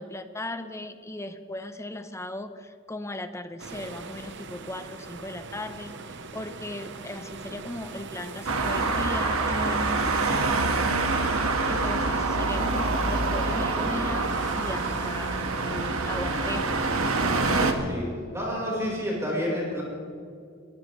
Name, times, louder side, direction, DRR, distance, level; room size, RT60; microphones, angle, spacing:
voice 1, 0.0-16.9, left 1 dB, 15° left, 9 dB, 0.8 m, -38 dB
sound 1, 3.6-17.6, right 4 dB, 60° right, 1.0 m, -41 dB
Traffic noise roadway noise, 8.5-17.7, right 3 dB, 80° right, 1.7 m, -26 dB
voice 2, 17.3-18.1 18.3-19.8, equal, 15° right, -4 dB, 4.8 m, -30 dB
22.0 x 16.0 x 3.3 m, 2.3 s
head